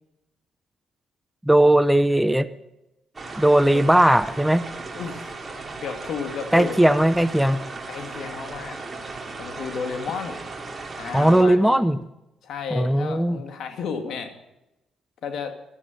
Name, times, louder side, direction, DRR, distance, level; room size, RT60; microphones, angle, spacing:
voice 1, 1.4-2.5 3.4-4.7 6.5-7.6 11.1-12.0 12.7-13.4, right 1 dB, 5° right, 13 dB, 0.7 m, -18 dB
sound 1, 3.1-11.4, right 3 dB, 25° right, 2.9 m, -36 dB
voice 2, 5.0-5.3 5.8-6.8 7.9-8.8 9.4-10.4 11.0-11.8 12.4-14.3 15.2-15.6, left 6 dB, 70° left, 5 dB, 2.3 m, -32 dB
14.5 x 12.5 x 5.5 m, 0.90 s
cardioid pair, 90°, 0 cm